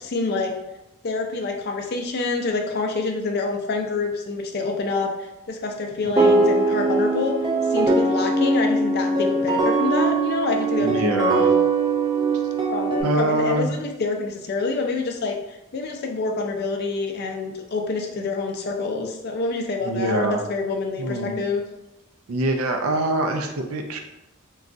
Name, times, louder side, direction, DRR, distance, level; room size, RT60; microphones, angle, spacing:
voice 1, 0.1-0.5 1.0-7.3 7.7-11.6 12.7-21.6, left 3 dB, 50° left, 3 dB, 0.4 m, -27 dB
sound 1, 6.2-13.0, right 3 dB, 20° right, 0.4 m, -21 dB
voice 2, 10.8-11.4 13.0-13.7 19.8-20.4 21.0-21.4 22.3-24.0, right 2 dB, 80° right, 4 dB, 0.4 m, -24 dB
3.9 x 2.3 x 2.5 m, 0.91 s
head